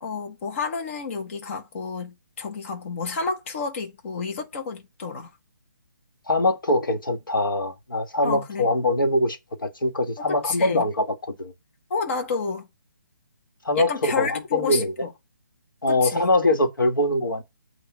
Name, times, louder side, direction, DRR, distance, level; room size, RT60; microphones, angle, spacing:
voice 1, 0.0-5.3 8.2-8.7 10.2-10.8 11.9-12.7 13.7-15.1 15.9-16.3, left 5 dB, 40° left, 1.5 m, -30 dB
voice 2, 6.3-11.5 13.7-14.9 15.8-17.4, left 1 dB, 90° left, 1.8 m, -23 dB
8.4 x 3.0 x 6.4 m
hypercardioid pair, 155°, 11 cm